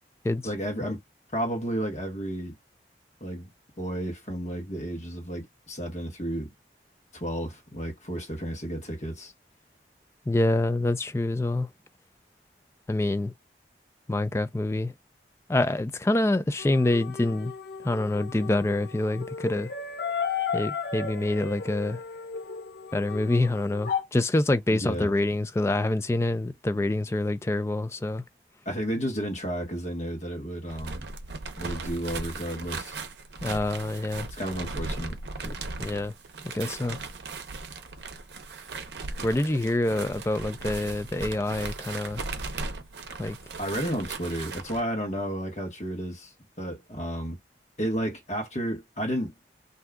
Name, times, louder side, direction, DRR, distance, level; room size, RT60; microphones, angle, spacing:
voice 1, 0.4-1.0 1.3-2.6 3.2-3.5 3.8-6.5 7.1-9.3 24.7-25.1 28.6-31.1 31.6-33.0 34.4-35.6 43.6-46.3 46.6-47.4 47.8-49.3, equal, 40° left, 1.2 m, -32 dB
voice 2, 10.3-11.7 12.9-13.3 14.1-14.9 15.5-17.5 17.8-19.7 20.5-22.0 22.9-28.2 33.4-34.3 35.8-36.1 36.4-37.0 39.2-42.2 43.2-43.4, left 2 dB, 15° left, 0.3 m, -26 dB
sound 1, 16.6-24.0, left 6 dB, 55° left, 0.6 m, -34 dB
sound 2, 30.6-44.8, right 3 dB, 70° right, 0.6 m, -37 dB
2.6 x 2.3 x 3.4 m
head